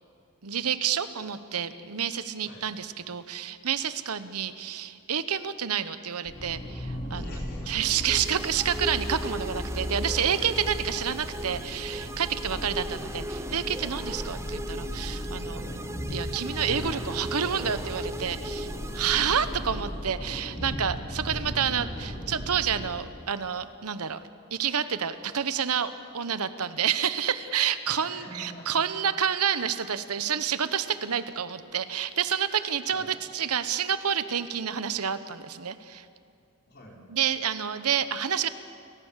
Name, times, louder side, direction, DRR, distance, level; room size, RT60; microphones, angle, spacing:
voice 1, 0.4-7.2 7.7-15.5 16.1-24.2 24.5-36.1 37.1-38.5, right 8 dB, 90° right, 13 dB, 1.0 m, -29 dB
sound 1, 6.3-22.9, equal, 25° left, 4.2 m, -36 dB
voice 2, 7.1-8.3 8.8-9.0 10.9-11.2 12.5-12.7 15.4-15.9 19.1-19.4 21.2-22.2 28.0-28.8 32.9-33.2 36.7-37.0, equal, 45° left, -2 dB, 4.8 m, -46 dB
sound 2, 8.1-19.9, right 1 dB, 10° right, 0.8 m, -38 dB
30.0 x 15.0 x 7.5 m, 2.4 s
head